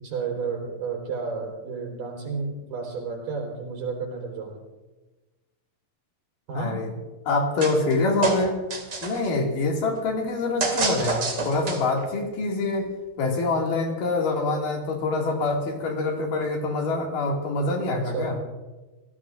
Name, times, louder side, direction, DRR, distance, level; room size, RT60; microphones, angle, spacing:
voice 1, 0.0-4.5 6.5-6.7 17.9-18.4, right 5 dB, 75° right, 0 dB, 5.7 m, -31 dB
voice 2, 6.6-7.0 7.3-8.6 9.0-12.9 13.2-18.4, left 3 dB, 70° left, 0 dB, 3.8 m, -25 dB
sound 1, 7.6-8.0 8.2-9.3 10.6-12.0, right 4 dB, 35° right, 2.5 m, -27 dB
26.5 x 17.0 x 2.5 m, 1.2 s
omnidirectional pair, 3.9 m